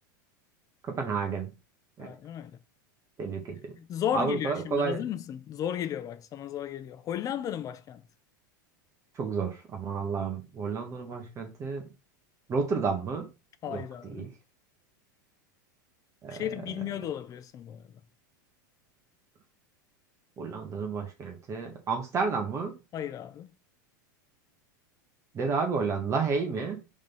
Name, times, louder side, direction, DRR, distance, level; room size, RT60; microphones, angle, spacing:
voice 1, 0.8-1.5 2.0-2.1 3.2-3.7 4.1-5.0 9.1-11.9 12.5-13.3 13.7-13.8 14.1-14.3 16.2-16.4 20.4-22.7 25.3-26.8, right 5 dB, 25° right, 1.6 m, -31 dB
voice 2, 2.0-2.6 3.8-8.0 13.6-14.3 16.3-17.8 22.9-23.5, left 10 dB, 35° left, 0.7 m, -34 dB
5.3 x 3.6 x 5.5 m
hypercardioid pair, 115°, 11 cm